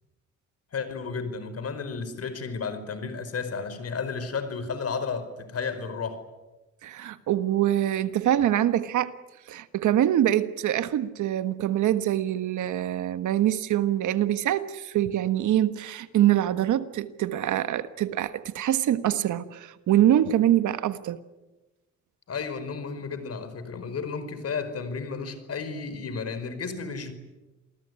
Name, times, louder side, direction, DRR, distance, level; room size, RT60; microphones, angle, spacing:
voice 1, 0.7-6.2 22.3-27.1, left 5 dB, 55° left, 5.1 m, -33 dB
voice 2, 6.8-9.1 9.5-21.2, right 12 dB, 75° right, 1.5 m, -24 dB
28.0 x 20.0 x 9.7 m
cardioid pair, 90°, 30 cm